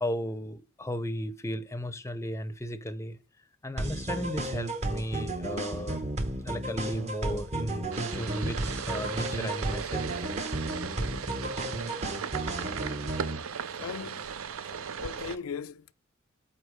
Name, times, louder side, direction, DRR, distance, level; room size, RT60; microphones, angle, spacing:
voice 1, 0.0-3.2 3.6-6.0 6.4-8.6 8.9-10.3 14.6-14.8, equal, 15° left, 0.6 m, -35 dB
sound 1, 3.8-13.4, right 1 dB, 30° right, 0.9 m, -33 dB
sound 2, 7.9-15.4, right 7 dB, 75° right, 0.5 m, -37 dB
voice 2, 13.8-14.3 15.0-15.9, left 6 dB, 80° left, 0.4 m, -38 dB
8.0 x 4.3 x 4.9 m
head